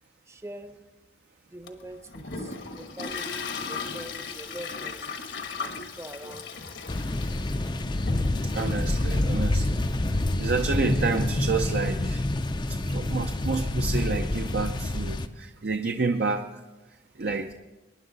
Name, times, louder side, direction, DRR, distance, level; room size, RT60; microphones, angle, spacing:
voice 1, 0.3-0.8 1.5-5.1 5.6-7.2, right 1 dB, 15° right, 8 dB, 0.8 m, -44 dB
Toilet flush, 1.7-11.9, left 5 dB, 70° left, 1.3 m, -38 dB
sound 1, 6.9-15.3, left 1 dB, 25° left, 0.5 m, -27 dB
voice 2, 8.5-9.8 10.1-12.2 12.6-16.6 17.2-17.5, right 4 dB, 55° right, 5 dB, 0.6 m, -29 dB
23.5 x 10.5 x 4.0 m, 1.2 s
head